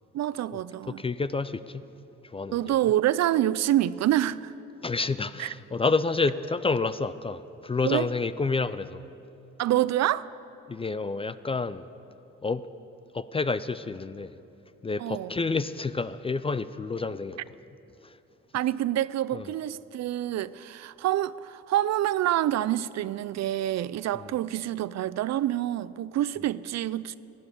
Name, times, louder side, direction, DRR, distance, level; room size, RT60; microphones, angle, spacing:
voice 1, 0.1-1.0 2.5-4.5 5.4-5.5 7.8-8.1 9.6-10.3 15.0-15.3 18.5-27.2, right 13 dB, 60° right, 0.4 m, -27 dB
voice 2, 0.9-1.8 2.3-2.7 4.8-9.1 10.7-11.8 12.4-12.6 13.1-14.3 14.8-17.4 18.0-18.1 19.3-19.4 24.2-24.3, left 4 dB, 20° left, 0.4 m, -29 dB
14.5 x 9.3 x 8.6 m
cardioid pair, 90°, 30 cm